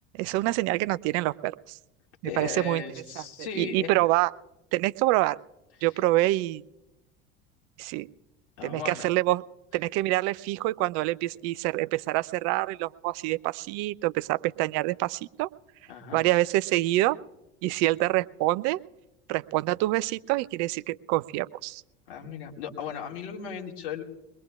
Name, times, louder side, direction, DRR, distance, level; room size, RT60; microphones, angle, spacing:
voice 1, 0.1-1.8 2.4-2.8 3.2-3.3 3.6-4.3 4.7-5.4 5.8-6.6 7.8-8.1 8.6-9.4 9.7-15.5 16.1-17.2 17.6-18.8 19.3-21.8, right 18 dB, 55° right, 18 dB, 0.5 m, -26 dB
voice 2, 2.2-3.9 8.6-9.1 15.9-16.2 22.1-24.0, left 7 dB, 60° left, 0 dB, 2.0 m, -36 dB
22.5 x 21.0 x 2.4 m, 0.94 s
hypercardioid pair, 75°, 32 cm